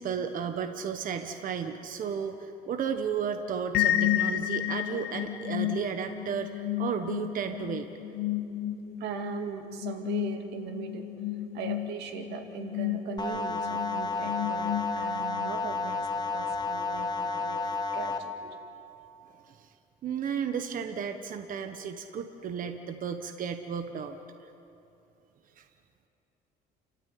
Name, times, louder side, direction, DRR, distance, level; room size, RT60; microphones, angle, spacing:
voice 1, 0.0-7.9 19.4-19.7 20.0-24.5 25.6-25.7, right 7 dB, 55° right, 7 dB, 1.3 m, -34 dB
sound 1, 3.7-15.4, left 13 dB, 75° left, 1.3 m, -32 dB
voice 2, 9.0-11.1 11.5-18.6, right 7 dB, 85° right, 5 dB, 2.2 m, -39 dB
sound 2, 13.2-18.2, left 3 dB, 25° left, 1.5 m, -31 dB
30.0 x 13.5 x 9.5 m, 2.9 s
cardioid pair, 110°, 17 cm